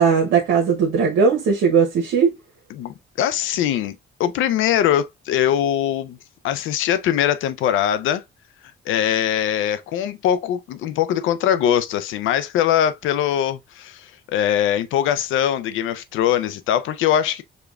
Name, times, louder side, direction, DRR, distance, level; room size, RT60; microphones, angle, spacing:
voice 1, 0.0-2.3, right 6 dB, 85° right, 0.9 m, -18 dB
voice 2, 2.7-6.2 6.4-8.2 8.9-17.4, left 10 dB, 85° left, 0.5 m, -22 dB
4.9 x 2.3 x 2.3 m
cardioid pair, 90°, 20 cm